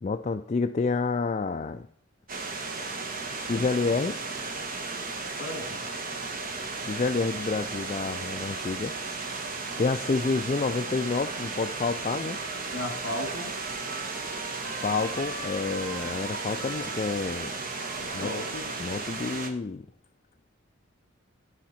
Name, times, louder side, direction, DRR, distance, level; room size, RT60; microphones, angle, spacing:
voice 1, 0.0-1.9 3.5-4.2 6.9-8.9 9.8-12.4 14.8-17.5 18.1-18.3 18.8-19.8, left 4 dB, 35° left, 7 dB, 0.3 m, -29 dB
sound 1, 2.3-19.5, right 3 dB, 45° right, 1.3 m, -35 dB
voice 2, 5.4-5.8 12.7-13.5 18.0-18.7, left 1 dB, 60° left, 7 dB, 2.0 m, -35 dB
Trumpet, 11.1-19.6, right 2 dB, 75° right, 2.2 m, -45 dB
16.0 x 5.8 x 4.2 m, 0.67 s
head